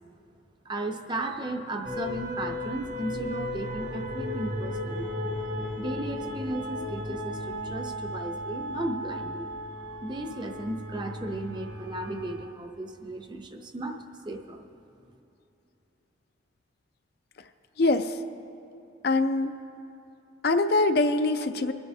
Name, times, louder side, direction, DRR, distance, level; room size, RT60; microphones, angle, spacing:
voice 1, 0.6-5.1 5.8-9.5 10.0-14.6, right 1 dB, 25° right, 4 dB, 0.6 m, -35 dB
sound 1, 1.8-12.5, left 1 dB, 65° right, 2.0 m, -35 dB
voice 2, 17.8-18.2 19.0-19.6 20.4-21.7, left 2 dB, 50° left, 8 dB, 0.4 m, -23 dB
24.0 x 9.7 x 2.7 m, 2.9 s
head